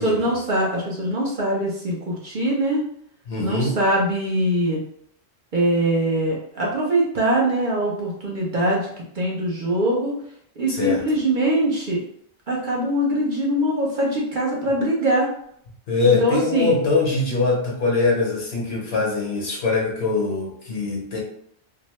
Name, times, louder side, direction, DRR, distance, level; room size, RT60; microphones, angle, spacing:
voice 1, 0.0-2.8 3.4-4.8 5.5-8.9 9.1-10.1 10.6-12.0 12.5-15.3 16.0-16.8, right 1 dB, 50° right, -3 dB, 0.7 m, -22 dB
voice 2, 3.3-3.8 10.7-11.0 14.8-14.9 15.9-21.2, left 3 dB, 65° left, -1 dB, 1.0 m, -22 dB
2.7 x 2.1 x 3.0 m, 0.67 s
omnidirectional pair, 1.2 m